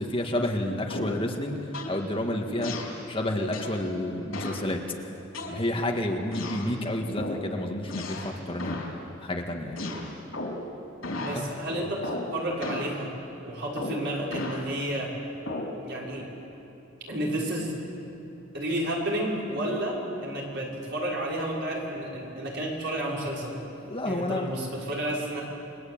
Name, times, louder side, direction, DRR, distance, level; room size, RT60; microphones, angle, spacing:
voice 1, 0.0-2.7 3.1-4.8 5.5-8.8 9.2-9.9 11.3-11.9 23.9-24.5, left 1 dB, 25° left, 2 dB, 1.9 m, -30 dB
sound 1, 0.9-1.3 1.7-2.0 2.6-3.0 3.5-3.8 4.3-4.7 5.3-5.9 6.3-6.7 7.2-7.5 7.9-8.3 8.6-8.9 9.8-10.7 11.0-11.4 12.0-12.3 12.6-13.0 13.8-14.6 15.5-15.8, left 2 dB, 85° left, 4.5 m, -34 dB
voice 2, 11.1-13.1 13.4-15.1 15.8-16.3 17.1-17.7 18.5-23.6 24.0-25.4, right 1 dB, 60° right, -3 dB, 6.2 m, -31 dB
29.5 x 22.0 x 8.9 m, 3.0 s
head